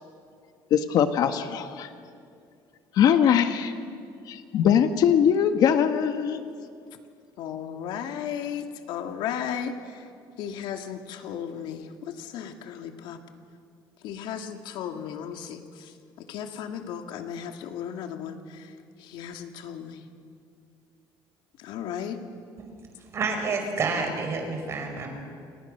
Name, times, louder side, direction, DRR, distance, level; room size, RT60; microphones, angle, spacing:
voice 1, 0.7-1.9 2.9-3.7 4.3-6.4, left 8 dB, 50° left, 8 dB, 1.4 m, -21 dB
voice 2, 7.4-9.7 10.4-13.2 14.0-15.6 16.3-18.4 19.0-20.0 21.6-22.2, left 8 dB, 70° left, 5 dB, 2.3 m, -35 dB
voice 3, 23.1-25.1, right 4 dB, 35° right, 4 dB, 5.2 m, -29 dB
29.0 x 28.5 x 6.6 m, 2.3 s
cardioid pair, 165°, 8 cm